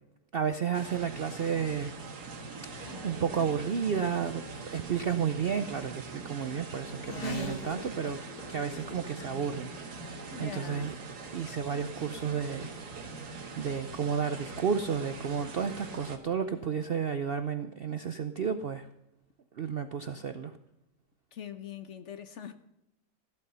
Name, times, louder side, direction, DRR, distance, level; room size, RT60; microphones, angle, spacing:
voice 1, 0.3-1.9 3.0-8.2 8.5-9.7 10.4-10.9 11.3-12.7 13.6-18.9 19.6-20.6, right 7 dB, 60° right, 0.6 m, -32 dB
sound 1, 0.7-16.2, right 4 dB, 85° right, 2.1 m, -43 dB
Race car auto racing / Accelerating revving vroom, 1.9-17.0, left 1 dB, 75° left, 3.0 m, -47 dB
voice 2, 7.0-7.6 10.3-11.0 21.3-22.5, left 8 dB, 55° left, 1.1 m, -42 dB
15.0 x 12.0 x 5.6 m
omnidirectional pair, 1.7 m